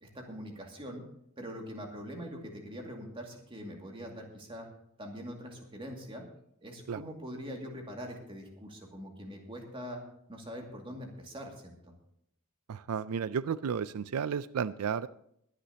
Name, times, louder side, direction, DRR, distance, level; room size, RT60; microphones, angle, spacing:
voice 1, 0.0-1.0 1.4-4.7 5.0-6.2 6.6-10.0 10.3-11.8, equal, 25° right, 1 dB, 2.3 m, -43 dB
voice 2, 12.7-15.1, right 7 dB, 85° right, 15 dB, 0.4 m, -33 dB
22.0 x 10.0 x 2.9 m, 0.73 s
head